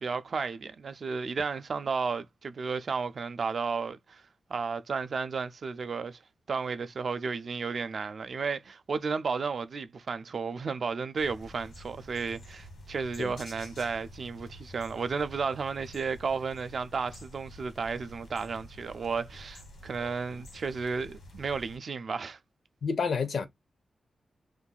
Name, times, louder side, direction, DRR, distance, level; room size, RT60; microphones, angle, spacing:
voice 1, 0.0-4.2 4.5-6.2 6.5-22.4, right 5 dB, 50° right, 0.3 m, -33 dB
sound 1, 11.2-21.8, left 1 dB, 90° left, 1.3 m, -49 dB
voice 2, 22.8-23.5, left 5 dB, 65° left, 0.5 m, -29 dB
2.5 x 2.3 x 3.7 m
wide cardioid pair, 155°, 0 cm